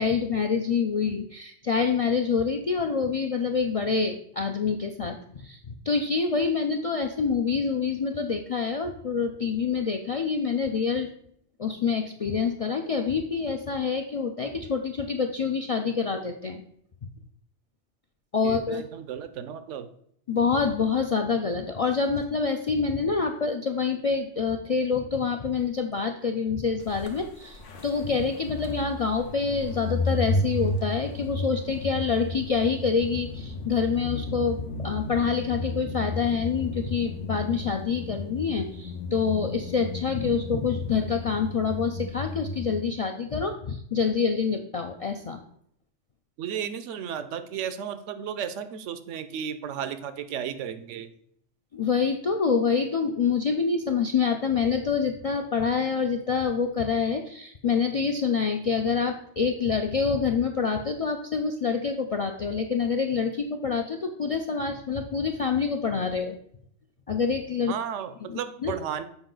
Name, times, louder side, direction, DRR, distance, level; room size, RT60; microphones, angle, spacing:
voice 1, 0.0-11.1 11.6-16.6 18.3-18.8 20.3-45.4 51.7-66.4 67.1-67.8 68.2-68.7, left 5 dB, 65° left, 4 dB, 0.3 m, -26 dB
voice 2, 18.4-19.9 46.4-51.1 67.7-69.0, right 8 dB, 85° right, 11 dB, 1.0 m, -34 dB
sound 1, 26.9-42.8, left 2 dB, 85° left, 1.2 m, -33 dB
7.1 x 4.8 x 3.8 m, 0.68 s
omnidirectional pair, 1.2 m